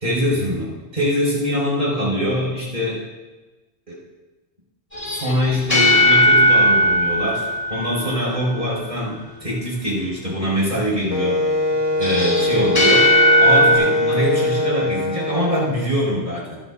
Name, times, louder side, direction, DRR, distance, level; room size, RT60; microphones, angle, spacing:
voice 1, 0.0-3.0 3.9-4.0 5.1-11.4 12.0-13.1 13.4-16.6, equal, 45° right, -5 dB, 4.9 m, -23 dB
sound 1, 4.9-8.4 12.0-13.8, equal, 40° left, 5.4 m, -17 dB
Wind instrument woodwind instrument, 11.1-15.7, left 2 dB, 15° right, 1.7 m, -22 dB
26.5 x 9.7 x 2.5 m, 1.2 s
omnidirectional pair, 1.1 m